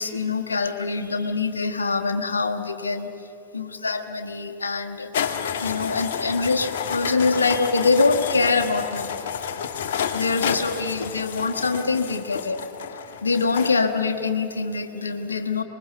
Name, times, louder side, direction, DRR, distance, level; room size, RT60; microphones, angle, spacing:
voice 1, 0.0-3.1 3.5-5.1 5.6-9.6 10.1-12.6 13.2-15.6, left 4 dB, 80° left, 7 dB, 1.3 m, -24 dB
sound 1, 5.1-13.7, left 7 dB, 60° left, 1.3 m, -30 dB
24.5 x 21.0 x 6.8 m, 2.8 s
figure-of-eight pair, 95°, 0 cm